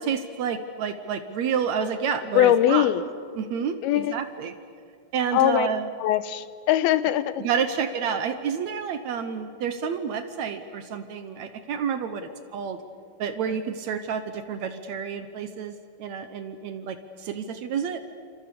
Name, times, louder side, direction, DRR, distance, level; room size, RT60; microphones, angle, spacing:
voice 1, 0.0-2.9 3.4-4.5 5.1-5.9 7.4-12.8 13.2-15.7 16.0-18.0, right 7 dB, 70° right, 9 dB, 1.7 m, -29 dB
voice 2, 2.3-3.0 3.8-4.2 5.3-5.7 6.0-7.4, left 12 dB, 80° left, 14 dB, 2.7 m, -21 dB
28.5 x 27.0 x 6.9 m, 2.2 s
omnidirectional pair, 4.4 m